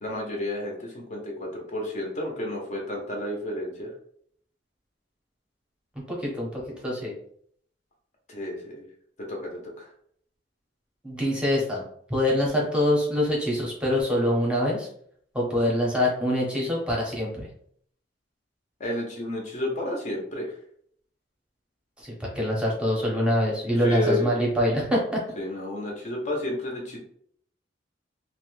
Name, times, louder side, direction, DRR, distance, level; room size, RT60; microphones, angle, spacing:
voice 1, 0.0-3.9 8.3-8.9 9.3-9.9 18.8-20.6 23.8-24.5 25.4-27.0, left 1 dB, 40° left, -1 dB, 0.6 m, -31 dB
voice 2, 6.1-7.1 11.0-11.8 12.1-14.9 15.3-17.5 22.0-25.2, left 1 dB, 5° right, -3 dB, 0.7 m, -25 dB
2.6 x 2.1 x 3.0 m, 0.63 s
head